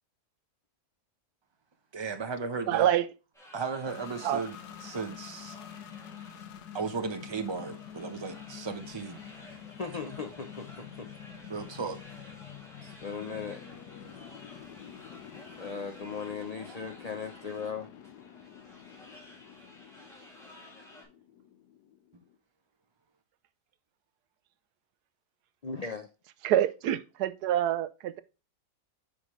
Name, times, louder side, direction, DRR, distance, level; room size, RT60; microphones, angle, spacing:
voice 1, 1.9-3.0 3.5-5.6 6.7-9.2 11.5-12.0 22.1-22.2, right 5 dB, 25° right, 0.6 m, -35 dB
voice 2, 2.7-3.1 4.2-4.4 26.4-28.2, right 11 dB, 80° right, 1.2 m, -26 dB
sound 1, 3.3-21.0, left 1 dB, ahead, 2.3 m, -53 dB
sound 2, 3.9-22.3, left 9 dB, 85° left, 1.2 m, -48 dB
voice 3, 9.8-11.1 12.6-13.6 15.6-17.9 25.6-26.1, left 5 dB, 70° left, 0.3 m, -38 dB
9.1 x 5.0 x 3.1 m
omnidirectional pair, 1.7 m